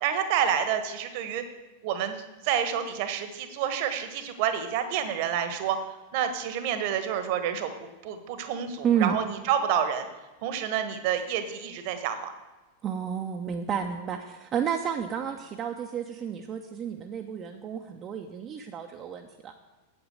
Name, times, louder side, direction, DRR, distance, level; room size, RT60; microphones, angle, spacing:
voice 1, 0.0-1.4 1.8-2.1 2.4-5.8 6.1-7.7 8.0-10.0 10.4-12.3 13.7-13.8, right 8 dB, 50° right, 9 dB, 1.3 m, -28 dB
voice 2, 8.8-9.2 12.8-19.5, right 8 dB, 30° right, 4 dB, 0.8 m, -31 dB
8.8 x 7.9 x 7.8 m, 1.2 s
figure-of-eight pair, 90°, 0 cm